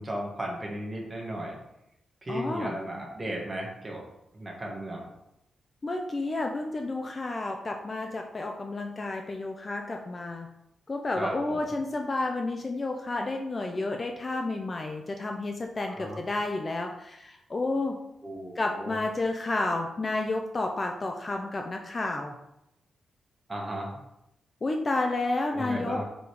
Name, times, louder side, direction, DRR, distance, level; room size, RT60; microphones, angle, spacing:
voice 1, 0.0-1.6 2.2-4.0 4.3-5.1 11.2-11.6 16.0-16.2 18.2-19.0 23.5-23.9 25.5-26.0, right 1 dB, 20° right, -1 dB, 1.6 m, -35 dB
voice 2, 2.3-2.8 5.8-10.5 10.9-18.0 18.6-22.4 24.6-26.0, left 2 dB, 25° left, 3 dB, 0.5 m, -31 dB
5.2 x 5.0 x 4.7 m, 0.84 s
wide cardioid pair, 155°, 0 cm